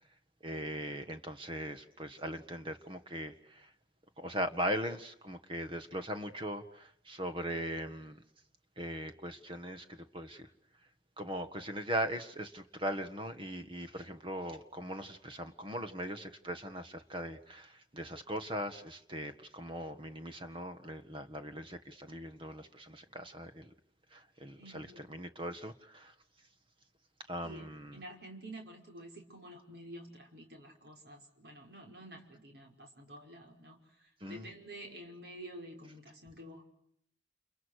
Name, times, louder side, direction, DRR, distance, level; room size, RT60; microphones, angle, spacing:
voice 1, 0.4-3.7 4.2-8.2 8.8-10.5 11.2-23.7 24.1-26.1 27.3-28.0 34.2-34.5, equal, 30° right, 8 dB, 1.7 m, -40 dB
voice 2, 24.6-25.1 27.4-36.6, right 1 dB, 60° right, 2 dB, 5.4 m, -50 dB
30.0 x 29.5 x 6.5 m, 0.69 s
head